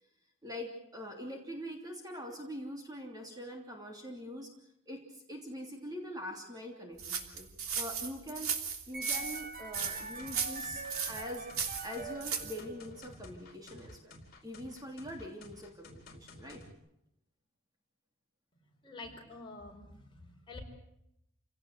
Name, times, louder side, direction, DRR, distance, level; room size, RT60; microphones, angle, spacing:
voice 1, 0.4-4.5 4.9-8.5 8.9-11.5 11.8-16.6, equal, 20° right, 2 dB, 3.1 m, -43 dB
sound 1, 7.0-12.6, right 6 dB, 85° right, 3.0 m, -36 dB
sound 2, 8.9-13.0, right 3 dB, 40° right, 1.9 m, -44 dB
sound 3, 9.8-16.7, left 1 dB, 45° left, 4.0 m, -53 dB
voice 2, 18.8-20.6, left 3 dB, 25° left, 1 dB, 5.0 m, -48 dB
28.0 x 17.5 x 8.0 m, 0.81 s
head